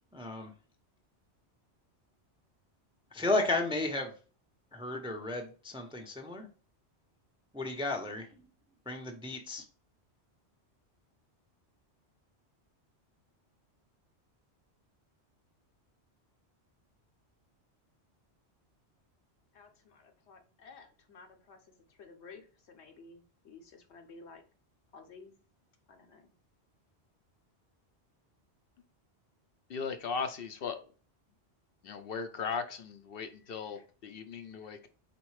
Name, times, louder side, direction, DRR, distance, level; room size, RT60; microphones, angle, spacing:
voice 1, 0.1-0.5 3.1-4.1 4.7-6.5 7.5-8.3 8.9-9.6, left 2 dB, 5° right, 0.5 m, -33 dB
voice 2, 19.5-21.6 21.9-24.4 24.9-25.3 25.9-26.3 33.7-33.8, left 4 dB, 80° left, 1.1 m, -54 dB
voice 3, 29.7-30.8 31.8-34.9, left 5 dB, 60° left, 0.7 m, -37 dB
4.2 x 4.0 x 3.2 m
omnidirectional pair, 1.2 m